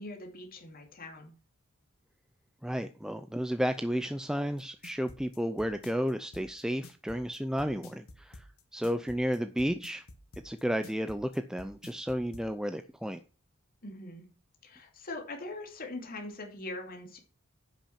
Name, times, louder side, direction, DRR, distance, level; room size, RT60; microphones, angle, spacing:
voice 1, 0.0-1.3 13.8-14.2 14.6-17.2, left 2 dB, 45° left, 2 dB, 2.6 m, -42 dB
voice 2, 2.6-8.4 8.7-10.0 10.4-13.2, equal, 5° right, 9 dB, 0.5 m, -32 dB
sound 1, 4.6-12.5, left 2 dB, 75° left, 1.6 m, -50 dB
10.0 x 6.1 x 5.8 m, 0.36 s
head